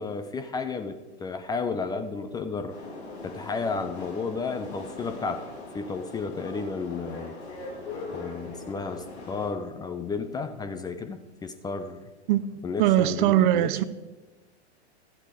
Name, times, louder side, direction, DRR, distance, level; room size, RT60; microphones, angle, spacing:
voice 1, 0.0-2.8 3.2-5.5 5.7-7.4 8.1-12.1 12.6-13.8, left 4 dB, 10° left, 8 dB, 0.4 m, -33 dB
sound 1, 2.7-9.5, left 3 dB, 65° left, 3.5 m, -40 dB
voice 2, 12.8-13.8, right 13 dB, 45° right, 16 dB, 0.6 m, -21 dB
12.5 x 8.3 x 5.1 m, 1.2 s
hypercardioid pair, 105°, 35 cm